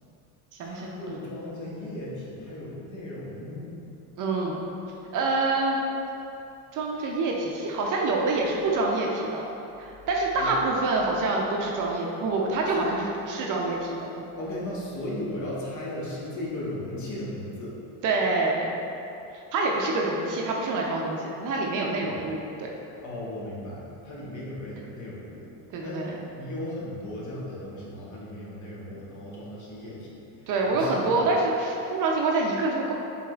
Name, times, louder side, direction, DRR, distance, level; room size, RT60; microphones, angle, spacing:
voice 1, 0.6-3.8 10.4-10.6 12.7-12.9 14.4-17.8 22.0-22.2 23.0-25.5 25.8-26.0 26.3-31.2, left 1 dB, 40° left, -5 dB, 1.1 m, -36 dB
voice 2, 4.2-4.6 5.1-5.8 6.7-9.5 9.8-14.3 18.0-18.8 19.5-22.7 25.7-26.2 30.5-32.9, right 3 dB, 45° right, -1 dB, 0.5 m, -26 dB
4.7 x 3.5 x 2.4 m, 2.8 s
supercardioid pair, 95°, 45 cm